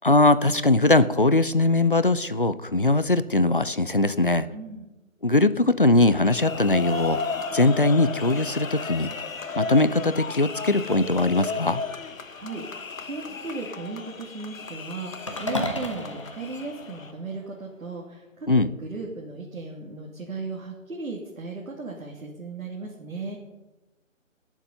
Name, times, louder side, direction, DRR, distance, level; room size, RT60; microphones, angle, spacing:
voice 1, 0.0-4.5 5.2-7.2 7.5-9.1 9.6-11.8 18.5-18.7, left 2 dB, 40° left, 14 dB, 0.4 m, -21 dB
voice 2, 4.5-4.9 12.4-12.7 13.0-23.4, right 3 dB, 90° right, -2 dB, 2.7 m, -36 dB
sound 1, 6.0-17.1, left 4 dB, 75° left, 1.4 m, -34 dB
sound 2, 15.3-17.6, left 1 dB, 25° left, 0.8 m, -33 dB
18.0 x 7.3 x 5.4 m, 1.1 s
hypercardioid pair, 175°, 40 cm